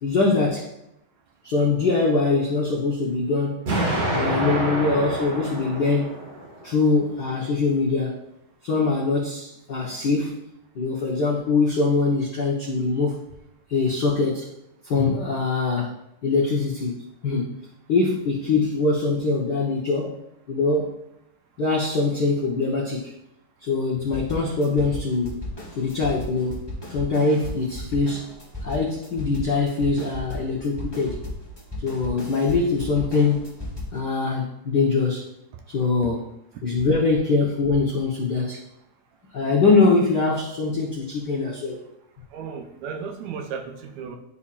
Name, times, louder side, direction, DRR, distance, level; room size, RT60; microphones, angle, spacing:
voice 1, 0.0-0.7 1.4-3.7 4.1-6.1 6.6-8.2 8.6-10.4 10.7-13.2 13.7-14.5 14.8-15.9 16.2-17.5 17.9-20.2 20.5-21.0 21.6-23.1 23.6-25.4 25.8-28.3 28.6-31.2 31.8-33.6 33.9-35.2 35.7-36.2 36.6-38.6 39.3-41.8, left 3 dB, 75° left, -4 dB, 0.9 m, -23 dB
Explosion, 3.7-6.6, right 1 dB, 55° right, 2.9 m, -26 dB
sound 1, 24.1-34.0, left 1 dB, 25° left, 0.5 m, -35 dB
voice 2, 42.3-44.2, right 6 dB, 75° right, 4 dB, 1.9 m, -34 dB
11.5 x 4.2 x 2.5 m, 0.82 s
omnidirectional pair, 3.4 m